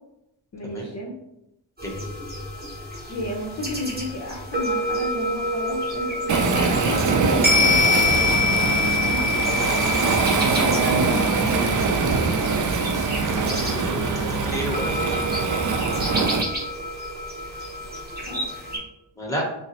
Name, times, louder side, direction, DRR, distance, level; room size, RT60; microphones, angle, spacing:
voice 1, 0.5-1.1 3.1-8.3 9.0-12.2 18.3-18.4, left 1 dB, 40° left, -2 dB, 0.6 m, -32 dB
sound 1, 1.8-18.8, left 2 dB, 20° right, 1.4 m, -27 dB
Waves surf, 6.3-16.4, right 4 dB, 45° right, 0.4 m, -23 dB
voice 2, 13.2-15.2 19.2-19.4, equal, 5° left, 0 dB, 0.9 m, -32 dB
5.5 x 2.0 x 2.9 m, 0.86 s
wide cardioid pair, 100°, 45 cm